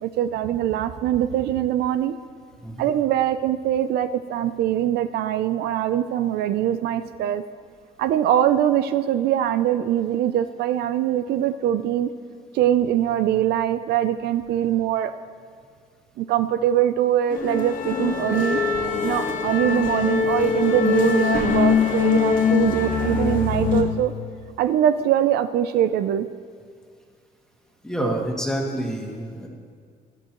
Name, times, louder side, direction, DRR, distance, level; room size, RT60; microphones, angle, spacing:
voice 1, 0.0-2.1 2.8-7.4 8.0-12.1 12.5-15.1 16.2-18.6 19.0-24.1 24.6-26.3 28.0-28.2, right 11 dB, 70° right, 11 dB, 0.5 m, -22 dB
sound 1, 17.3-23.8, left 6 dB, 55° left, 1.4 m, -22 dB
voice 2, 27.8-29.5, equal, 5° left, 0 dB, 1.8 m, -28 dB
17.5 x 10.5 x 3.0 m, 2.1 s
cardioid pair, 110°, 17 cm